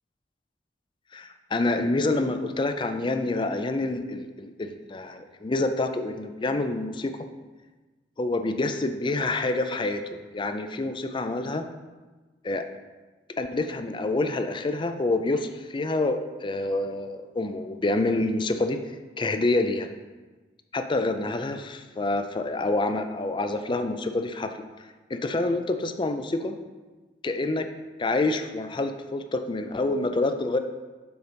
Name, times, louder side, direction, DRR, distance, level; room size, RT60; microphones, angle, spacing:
voice 1, 1.1-7.1 8.2-11.7 12.4-12.6 13.4-18.8 19.2-19.9 20.7-24.5 25.1-26.6 27.2-27.7 28.0-30.6, left 2 dB, 30° left, 8 dB, 0.4 m, -27 dB
7.0 x 3.9 x 5.1 m, 1.3 s
head